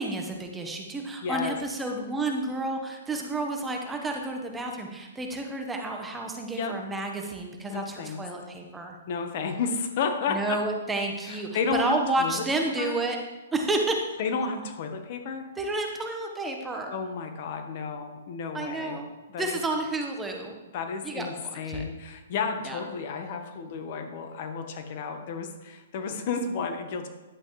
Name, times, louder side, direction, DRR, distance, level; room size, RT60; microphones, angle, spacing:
voice 1, 0.0-9.0 10.3-13.2 13.5-14.2 15.6-16.9 18.5-19.1 19.4-20.5 21.0-21.8 22.6-22.8, right 2 dB, 10° right, 2 dB, 1.2 m, -30 dB
voice 2, 1.2-1.6 6.5-6.8 7.7-8.2 9.1-10.6 11.2-12.4 12.8-13.0 14.2-15.5 16.9-19.0 19.3-19.6 20.7-27.1, left 5 dB, 50° left, 6 dB, 1.2 m, -32 dB
11.0 x 8.0 x 3.2 m, 1.1 s
hypercardioid pair, 135°, 0 cm